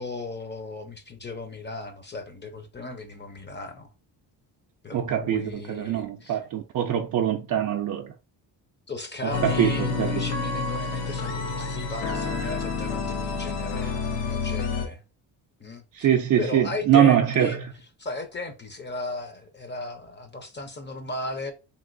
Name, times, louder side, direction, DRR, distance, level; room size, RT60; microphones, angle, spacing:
voice 1, 0.0-3.9 4.8-6.4 8.9-15.0 15.6-16.1 16.4-17.6 18.0-21.5, left 2 dB, 25° left, 0.6 m, -36 dB
voice 2, 4.9-8.1 9.2-10.2 15.9-17.7, right 10 dB, 45° right, 0.4 m, -23 dB
sound 1, 9.3-14.9, left 4 dB, 80° left, 0.8 m, -29 dB
3.0 x 2.9 x 2.5 m
cardioid pair, 80°, 45 cm